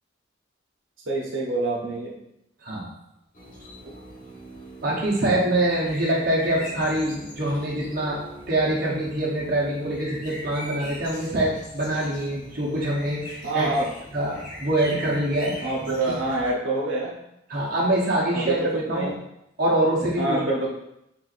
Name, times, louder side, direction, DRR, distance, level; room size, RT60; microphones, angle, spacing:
voice 1, 1.1-2.2 13.4-13.9 15.6-17.2 18.3-19.1 20.2-20.7, right 2 dB, 75° right, -3 dB, 0.9 m, -26 dB
sound 1, 3.3-16.5, equal, 40° left, 1.0 m, -41 dB
voice 2, 4.8-8.2 8.5-13.7 14.1-15.6 16.1-16.2 17.5-19.1 19.6-20.4, right 1 dB, 45° right, -5 dB, 0.9 m, -24 dB
4.4 x 3.7 x 2.5 m, 0.82 s
head